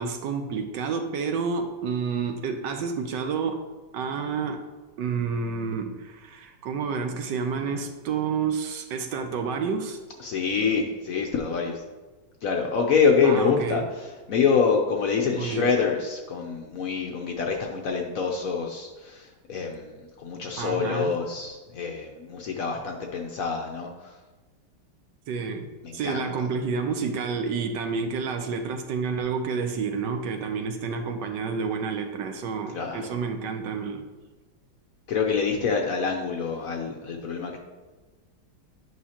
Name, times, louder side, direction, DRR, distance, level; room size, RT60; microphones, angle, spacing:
voice 1, 0.0-3.6 3.9-4.6 5.0-10.0 13.2-13.8 15.3-15.7 20.6-21.1 25.3-34.1, right 5 dB, 75° right, 6 dB, 1.2 m, -29 dB
voice 2, 10.2-11.8 12.4-24.2 25.8-26.3 32.7-33.1 35.1-37.6, left 5 dB, 65° left, 1 dB, 0.8 m, -26 dB
9.4 x 5.6 x 2.9 m, 1.3 s
omnidirectional pair, 2.1 m